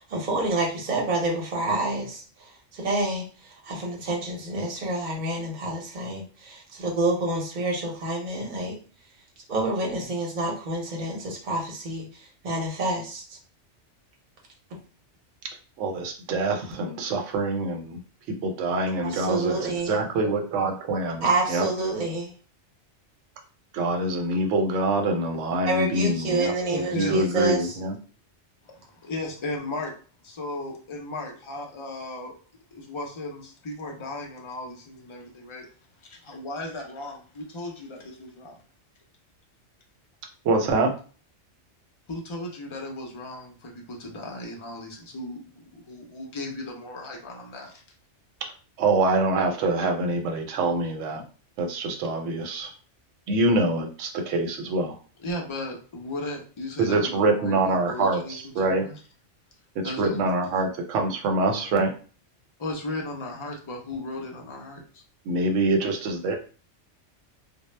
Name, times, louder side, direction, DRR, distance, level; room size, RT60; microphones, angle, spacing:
voice 1, 0.0-2.2 2.7-3.2 3.7-8.7 9.5-12.0 12.4-13.2 19.0-20.0 21.2-22.3 25.7-27.6, right 2 dB, 45° right, -1 dB, 0.7 m, -27 dB
voice 2, 15.8-18.0 18.3-21.7 23.7-28.0 40.4-40.9 48.8-51.2 51.6-52.7 53.3-55.0 56.8-58.8 60.0-61.9 65.3-66.4, right 2 dB, 85° right, 4 dB, 0.9 m, -25 dB
voice 3, 26.7-27.2 28.6-29.9 30.2-32.3 32.7-35.7 36.1-38.6 42.1-45.4 45.7-47.8 55.2-59.0 59.8-60.2 62.6-65.0, left 2 dB, 50° left, 0 dB, 0.3 m, -36 dB
2.0 x 2.0 x 3.1 m, 0.38 s
omnidirectional pair, 1.2 m